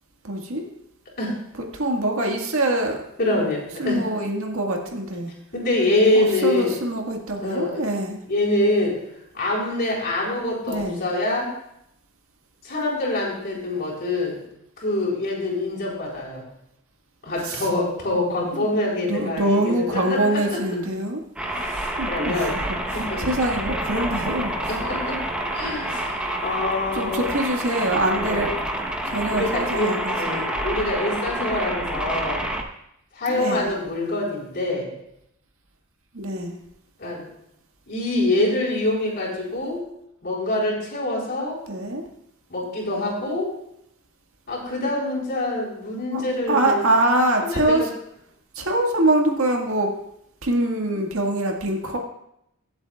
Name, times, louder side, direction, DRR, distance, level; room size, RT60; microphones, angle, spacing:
voice 1, 0.2-0.7 1.7-3.0 3.8-5.3 6.2-8.2 10.7-11.1 17.4-17.7 18.5-18.7 19.0-21.2 22.0-24.8 26.9-28.5 29.1-30.5 33.3-33.7 36.1-36.6 41.7-42.0 46.1-46.2 46.5-47.9 48.6-49.9 50.4-52.0, right 1 dB, 75° right, 2 dB, 1.8 m, -24 dB
voice 2, 3.2-4.0 5.5-6.7 7.4-7.7 8.3-9.0 9.3-11.5 12.6-14.4 14.8-16.5 17.2-20.6 21.4-22.6 22.9-23.2 24.6-25.2 25.5-27.3 28.2-28.5 29.3-32.5 33.1-34.9 37.0-37.3 37.9-39.9 40.2-41.6 42.5-43.5 44.5-46.8 47.4-47.9, left 2 dB, 50° left, -4 dB, 4.2 m, -25 dB
sound 1, 21.4-32.6, right 1 dB, 5° right, 1.0 m, -28 dB
23.5 x 7.9 x 2.4 m, 0.79 s
head